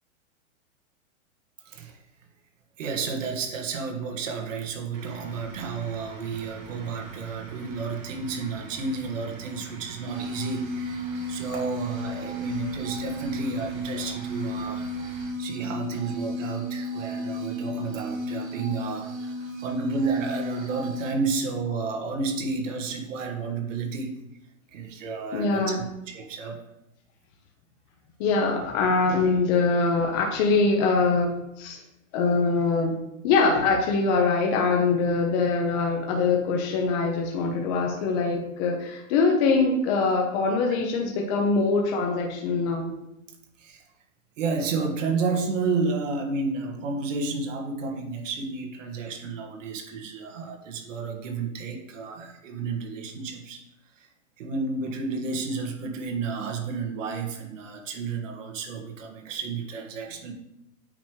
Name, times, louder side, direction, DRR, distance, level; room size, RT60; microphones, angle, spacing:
voice 1, 1.6-2.0 2.8-14.9 15.4-24.1 24.7-26.6 43.6-43.8 44.4-53.6 54.0-54.1 54.4-60.3, right 4 dB, 65° right, 2 dB, 1.6 m, -31 dB
sound 1, 4.9-15.3, right 5 dB, 25° right, 1.5 m, -45 dB
sound 2, 10.1-21.1, equal, 85° right, 2.2 m, -33 dB
voice 2, 25.3-25.8 28.2-31.8 32.1-32.9 33.2-42.9, left 4 dB, 35° left, 1 dB, 0.9 m, -23 dB
8.7 x 3.2 x 4.6 m, 0.85 s
hypercardioid pair, 150°, 41 cm